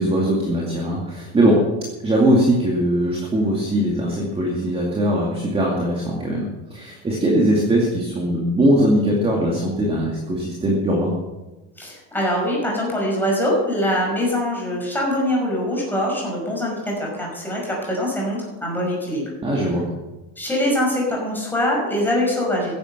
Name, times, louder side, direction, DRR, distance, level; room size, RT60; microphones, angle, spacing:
voice 1, 0.0-1.6 2.0-11.1 19.4-19.9, right 1 dB, 15° right, -2 dB, 2.4 m, -20 dB
voice 2, 11.8-19.2 19.5-19.6 20.4-22.7, left 1 dB, 5° left, -3 dB, 5.6 m, -23 dB
15.5 x 11.0 x 6.7 m, 1.1 s
cardioid pair, 170°, 34 cm